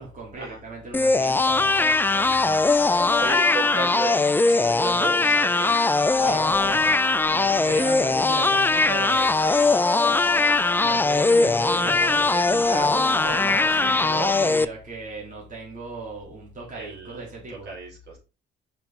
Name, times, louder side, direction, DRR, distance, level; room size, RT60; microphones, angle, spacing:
voice 1, 0.0-2.7 6.0-7.0 7.3-9.3 10.8-17.7, right 3 dB, 40° right, 3.1 m, -36 dB
sound 1, 0.9-14.6, left 3 dB, 10° left, 0.4 m, -20 dB
voice 2, 3.2-5.8 7.6-7.8 9.2-10.3 13.7-13.9 16.7-18.2, right 4 dB, 60° right, 3.5 m, -35 dB
5.9 x 5.8 x 3.7 m
cardioid pair, 90°, 20 cm